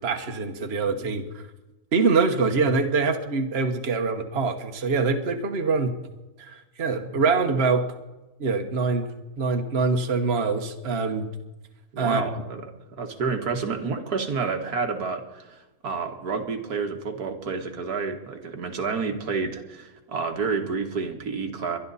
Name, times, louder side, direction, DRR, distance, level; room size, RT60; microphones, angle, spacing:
voice 1, 0.0-1.4 1.9-5.9 6.4-7.9 8.4-9.1 9.4-11.3 12.0-12.3, right 4 dB, 45° right, 5 dB, 1.4 m, -24 dB
voice 2, 11.9-12.6 12.9-21.8, right 5 dB, 75° right, 4 dB, 2.0 m, -29 dB
23.0 x 11.5 x 4.1 m, 1.0 s
omnidirectional pair, 1.7 m